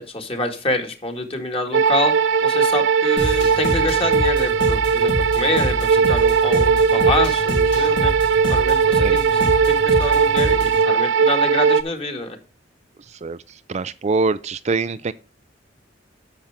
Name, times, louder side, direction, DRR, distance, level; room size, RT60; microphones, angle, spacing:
voice 1, 0.0-2.1 2.4-8.1 8.5-12.4, left 2 dB, 30° left, 2.0 m, -27 dB
sound 1, 1.7-11.8, right 6 dB, 70° right, 0.8 m, -18 dB
sound 2, 3.2-10.8, equal, 70° left, 3.7 m, -27 dB
voice 2, 13.7-15.1, right 3 dB, 35° right, 0.4 m, -23 dB
10.0 x 7.0 x 3.6 m
head